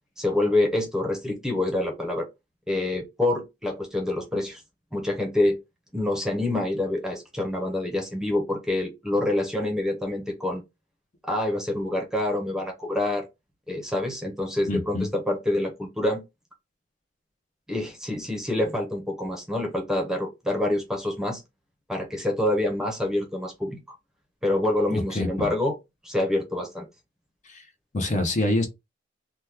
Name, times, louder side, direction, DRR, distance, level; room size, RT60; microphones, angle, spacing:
voice 1, 0.2-2.3 2.7-4.6 4.9-5.6 5.9-10.6 11.2-13.3 13.7-16.2 17.7-21.4 21.9-24.0 24.4-25.7 26.0-26.8, left 1 dB, 5° right, 0.8 m, -26 dB
voice 2, 14.7-15.1 24.9-25.5 27.4-27.6 27.9-28.7, left 2 dB, 40° left, 0.7 m, -26 dB
2.9 x 2.2 x 3.4 m
head